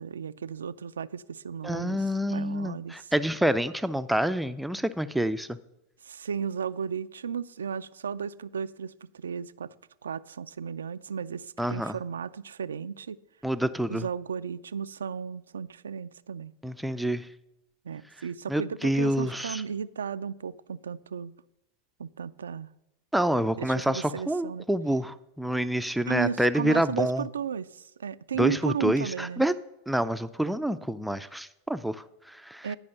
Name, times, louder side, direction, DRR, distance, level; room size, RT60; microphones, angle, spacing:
voice 1, 0.0-3.1 6.0-9.7 10.0-13.2 13.9-16.5 17.8-21.3 22.0-22.7 23.6-24.6 26.1-29.5 32.6-32.8, right 7 dB, 90° right, 15 dB, 0.3 m, -35 dB
voice 2, 1.6-5.6 11.6-12.0 13.4-14.1 16.6-17.3 18.5-19.6 23.1-27.3 28.4-29.5 29.9-32.7, right 1 dB, ahead, 11 dB, 0.4 m, -27 dB
10.5 x 5.3 x 6.5 m, 0.88 s
hypercardioid pair, 100°, 0 cm